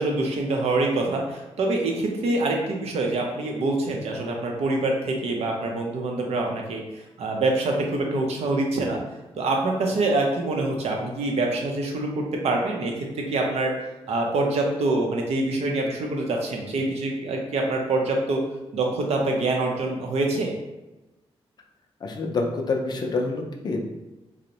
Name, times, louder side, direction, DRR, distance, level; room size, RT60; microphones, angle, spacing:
voice 1, 0.0-6.8 7.2-9.0 9.4-13.7 14.1-18.4 18.7-20.5, right 2 dB, 85° right, 1 dB, 0.5 m, -25 dB
voice 2, 22.0-23.8, left 3 dB, 40° left, 2 dB, 0.3 m, -27 dB
2.6 x 2.0 x 2.8 m, 1.0 s
wide cardioid pair, 170°, 11 cm